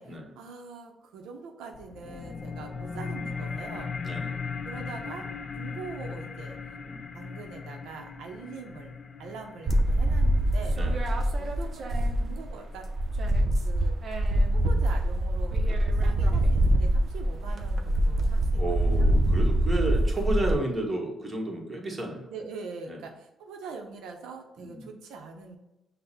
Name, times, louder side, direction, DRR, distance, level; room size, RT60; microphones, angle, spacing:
voice 1, 0.0-3.9 4.6-6.6 7.1-10.8 11.4-12.9 13.6-13.9 14.5-19.1 22.3-25.6, right 5 dB, 90° right, 3 dB, 0.5 m, -43 dB
sound 1, 1.7-12.7, left 5 dB, 40° left, 0.4 m, -38 dB
voice 2, 2.0-2.4 4.0-4.4 6.8-7.0 10.7-11.0 18.6-22.3 22.9-23.0 24.6-24.9, right 1 dB, 25° right, 1 dB, 1.1 m, -32 dB
sound 2, 9.7-12.5 12.8-20.6, right 1 dB, 50° right, 0.6 m, -24 dB
5.6 x 2.0 x 4.1 m, 0.94 s
cardioid pair, 85°, 0 cm